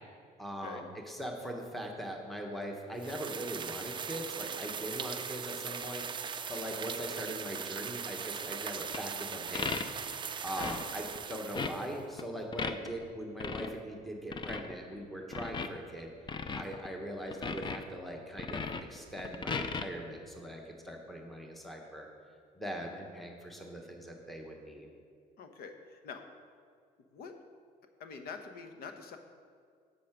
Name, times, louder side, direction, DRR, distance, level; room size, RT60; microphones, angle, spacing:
voice 1, 0.4-6.0 6.5-9.7 10.4-16.1 16.6-22.1 22.6-24.9, equal, ahead, 1 dB, 1.2 m, -41 dB
sound 1, 3.0-12.0, right 7 dB, 30° right, 0.4 m, -40 dB
sound 2, 8.9-9.0 9.5-10.2 10.6-10.8 11.2-11.3 11.5-11.7 12.2-13.0 13.4-13.7 14.3-14.7 15.3-16.0 16.3-16.9 17.2-17.9 18.4-19.8, left 5 dB, 25° left, 0.5 m, -36 dB
voice 2, 25.4-26.2 27.1-27.4 28.0-29.2, left 5 dB, 65° left, 7 dB, 1.0 m, -45 dB
8.5 x 6.7 x 5.9 m, 2.2 s
cardioid pair, 110°, 17 cm